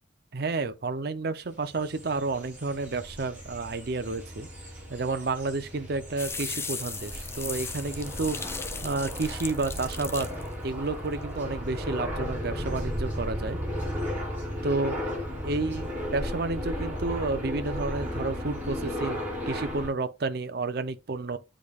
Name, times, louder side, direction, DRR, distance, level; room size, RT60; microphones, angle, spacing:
voice 1, 0.3-4.5 4.9-8.4 8.8-10.3 10.6-13.6 14.6-15.0 15.4-21.4, right 3 dB, 55° right, 0.6 m, -31 dB
sound 1, 1.5-19.9, equal, 10° right, 3.6 m, -35 dB
sound 2, 6.2-11.3, left 4 dB, 15° left, 0.5 m, -37 dB
10.5 x 5.0 x 2.4 m
head